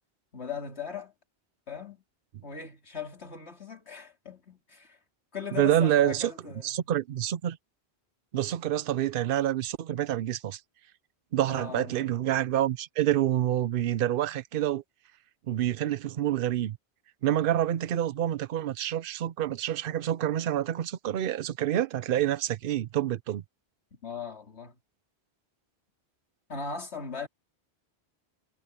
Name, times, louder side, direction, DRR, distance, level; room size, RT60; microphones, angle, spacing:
voice 1, 0.3-1.1 1.7-2.0 2.4-5.0 5.3-6.8 11.5-12.1 24.0-24.7 26.5-27.3, left 6 dB, 90° left, 3.3 m, -39 dB
voice 2, 5.6-6.3 6.6-7.6 8.3-10.6 11.3-14.8 15.5-16.8 17.2-23.4, right 12 dB, 60° right, 0.8 m, -27 dB
omnidirectional pair, 1.1 m